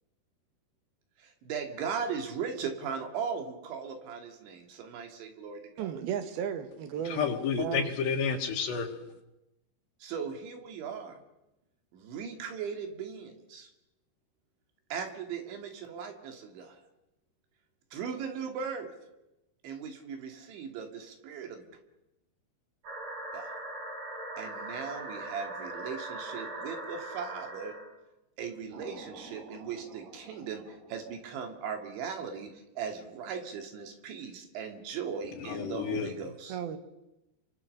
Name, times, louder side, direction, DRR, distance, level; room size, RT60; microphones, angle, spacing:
voice 1, 1.2-5.9 10.0-11.2 11.9-13.7 14.9-16.8 17.9-18.9 19.6-21.7 23.3-23.5 24.4-27.7 28.4-30.6 30.9-36.6, right 6 dB, 80° right, 4 dB, 4.8 m, -38 dB
voice 2, 5.8-7.9 36.5-36.8, right 9 dB, 65° right, 9 dB, 3.1 m, -35 dB
voice 3, 7.2-8.9 35.5-36.1, left 6 dB, 70° left, 2 dB, 3.6 m, -30 dB
sound 1, 22.8-27.9 28.7-31.2, right 2 dB, 45° right, 6.6 m, -41 dB
29.5 x 24.0 x 6.7 m, 0.94 s
omnidirectional pair, 5.2 m